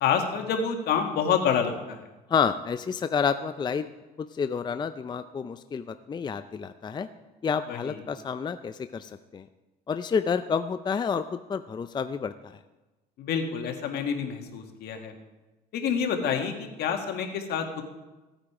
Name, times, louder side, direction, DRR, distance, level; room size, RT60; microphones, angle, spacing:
voice 1, 0.0-2.0 7.7-8.0 13.2-15.1 15.7-17.8, left 7 dB, 75° left, 4 dB, 1.9 m, -28 dB
voice 2, 2.3-3.9 4.2-7.1 7.4-9.4 9.9-12.3, left 6 dB, 25° left, 10 dB, 0.5 m, -29 dB
16.5 x 8.9 x 4.9 m, 1.1 s
cardioid pair, 110°, 17 cm